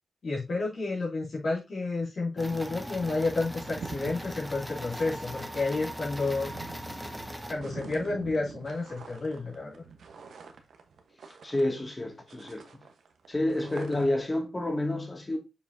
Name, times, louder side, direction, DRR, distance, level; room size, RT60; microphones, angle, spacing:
voice 1, 0.2-6.5 6.9-7.0 7.5-9.8, left 3 dB, 65° left, 2.3 m, -31 dB
sound 1, 2.4-7.5, equal, ahead, 1.1 m, -39 dB
sound 2, 3.3-12.0 12.3-14.3, right 5 dB, 85° right, 1.0 m, -47 dB
voice 2, 11.4-12.8 13.3-15.4, left 1 dB, 25° left, 2.0 m, -29 dB
6.9 x 5.4 x 2.6 m
cardioid pair, 70°, 0 cm